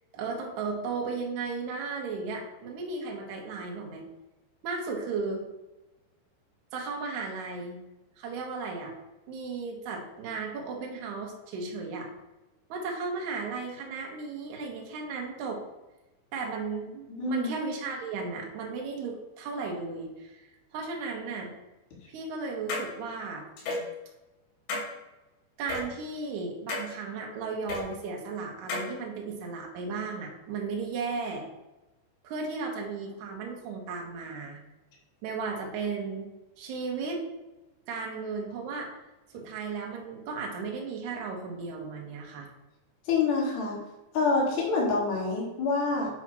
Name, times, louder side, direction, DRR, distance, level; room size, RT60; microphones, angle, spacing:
voice 1, 0.1-4.1 4.6-5.4 6.7-7.8 8.2-9.0 9.3-12.1 12.7-15.6 16.3-21.5 22.1-23.4 25.6-31.5 32.2-34.6 35.2-36.3 36.6-37.2 37.9-39.0 39.3-42.5, right 4 dB, 70° right, 0 dB, 1.9 m, -35 dB
voice 2, 17.1-17.5 43.0-43.8 44.1-46.1, left 3 dB, 50° left, -4 dB, 2.8 m, -26 dB
sound 1, 22.7-22.9 23.6-23.9 24.7-24.9 25.7-25.8 26.7-26.9 27.7-27.8 28.7-28.9, left 2 dB, 85° left, 4.5 m, -31 dB
8.8 x 2.9 x 6.0 m, 1.0 s
omnidirectional pair, 5.2 m